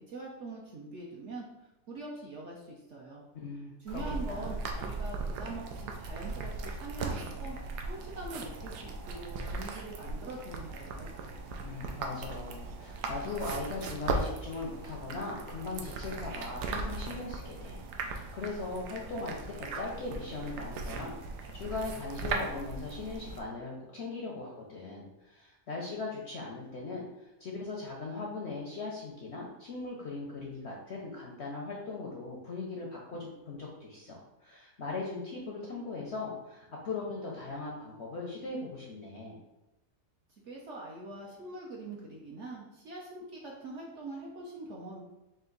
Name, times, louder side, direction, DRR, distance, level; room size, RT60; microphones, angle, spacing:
voice 1, 0.0-1.4 1.9-3.2 3.8-7.6 7.9-11.1 40.3-45.0, right 2 dB, 60° right, -3 dB, 0.8 m, -43 dB
voice 2, 3.3-4.5 11.6-21.1 21.5-39.4, left 3 dB, 60° left, -2 dB, 0.7 m, -39 dB
sound 1, 3.9-23.4, right 3 dB, 85° right, 1.2 m, -38 dB
4.3 x 2.5 x 3.8 m, 0.97 s
omnidirectional pair, 1.7 m